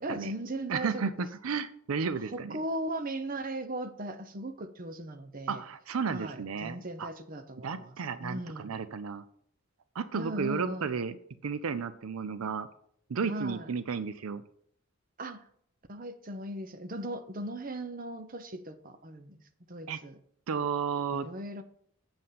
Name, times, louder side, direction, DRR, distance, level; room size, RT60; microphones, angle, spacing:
voice 1, 0.0-1.1 2.3-5.6 6.1-8.0 8.2-8.7 10.1-10.9 13.2-13.7 15.2-15.5 15.9-19.4 19.7-20.2 21.1-21.6, right 1 dB, 40° right, 9 dB, 0.8 m, -38 dB
voice 2, 0.7-2.6 5.5-7.1 7.6-9.2 9.9-11.2 11.4-12.7 13.1-14.4 19.9-20.0 20.5-21.3, right 5 dB, 85° right, 13 dB, 0.5 m, -33 dB
7.6 x 6.9 x 5.8 m, 0.65 s
head